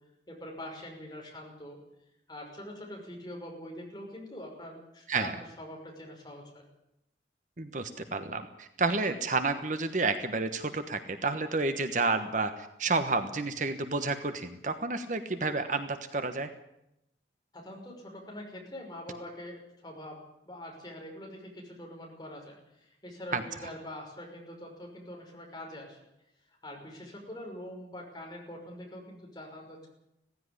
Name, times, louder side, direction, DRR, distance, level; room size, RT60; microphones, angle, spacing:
voice 1, 0.3-1.8 2.3-5.3 5.6-6.5 17.5-20.2 20.5-26.0 26.6-29.9, left 1 dB, 25° left, 0 dB, 5.8 m, -44 dB
voice 2, 7.6-16.5 23.3-23.7, right 3 dB, 45° right, 9 dB, 1.2 m, -30 dB
17.0 x 15.5 x 9.8 m, 0.81 s
head